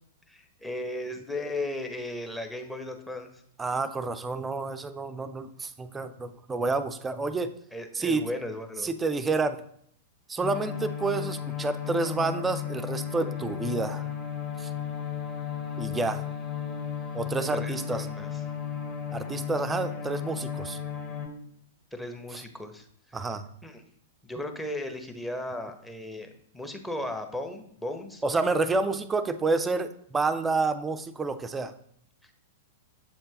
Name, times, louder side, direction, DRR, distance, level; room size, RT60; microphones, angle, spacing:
voice 1, 0.3-3.4 7.7-8.9 17.5-18.4 21.9-23.2 23.6-23.8 24.2-28.2 32.2-32.3, left 1 dB, 5° left, 5 dB, 0.8 m, -36 dB
voice 2, 3.6-7.5 8.0-8.2 8.8-9.6 10.3-14.1 14.6-14.7 15.8-16.2 17.1-18.1 19.1-20.8 23.1-23.5 28.2-31.7, right 3 dB, 15° right, 9 dB, 0.4 m, -29 dB
sound 1, 10.4-21.3, left 8 dB, 30° left, 1.5 m, -34 dB
7.5 x 4.4 x 2.9 m, 0.67 s
figure-of-eight pair, 100°, 0 cm